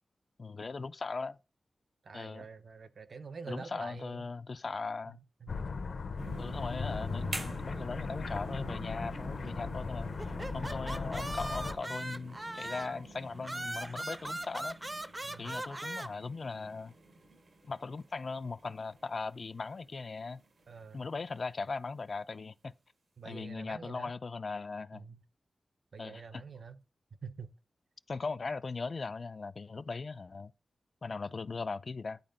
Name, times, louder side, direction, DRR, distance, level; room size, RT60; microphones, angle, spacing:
voice 1, 0.4-1.4 2.1-2.5 3.5-5.2 6.4-10.1 10.5-14.8 15.4-16.9 17.7-20.4 20.9-22.7 23.2-25.0 26.0-26.4 28.1-30.5 31.0-32.2, left 4 dB, 50° left, 0.3 m, -39 dB
voice 2, 2.0-4.2 5.1-5.7 10.5-10.6 15.2-15.6 20.7-21.1 23.2-24.1 24.9-25.2 25.9-26.8 27.2-27.5, right 5 dB, 65° right, 0.6 m, -47 dB
sound 1, 5.5-11.8, left 4 dB, 75° left, 0.8 m, -38 dB
sound 2, 6.2-21.1 21.6-21.7, right 2 dB, 80° right, 1.7 m, -47 dB
sound 3, 10.2-13.0 13.4-16.1, right 1 dB, 20° right, 0.5 m, -39 dB
10.5 x 4.3 x 3.8 m
wide cardioid pair, 115°, 0 cm